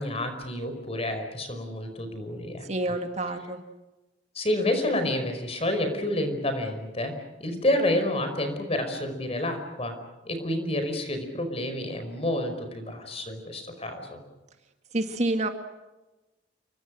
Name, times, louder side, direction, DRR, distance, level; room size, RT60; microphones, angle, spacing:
voice 1, 0.0-2.6 4.3-7.1 7.4-9.9 10.2-14.2, left 1 dB, 35° left, 7 dB, 5.1 m, -29 dB
voice 2, 2.6-3.6 14.9-15.5, right 2 dB, 40° right, 6 dB, 2.0 m, -28 dB
29.5 x 24.5 x 6.4 m, 1.1 s
head